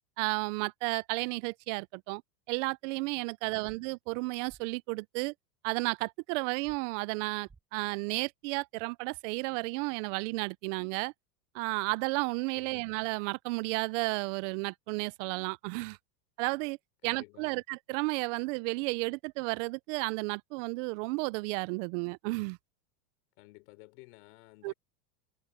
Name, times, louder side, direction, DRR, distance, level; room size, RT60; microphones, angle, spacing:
voice 1, 0.2-2.2 2.5-5.3 5.6-11.1 11.5-16.0 16.4-16.8 17.0-22.6 24.6-24.7, right 27 dB, 50° right, 0.6 m, -33 dB
voice 2, 3.4-3.7 12.5-12.9 17.0-17.6 23.4-24.7, left 25 dB, 60° left, 4.8 m, -55 dB
sound 1, 3.6-3.8 4.5-4.6 6.6-6.8 7.4-7.6, right 4 dB, 15° right, 7.0 m, -56 dB
supercardioid pair, 130°, 50 cm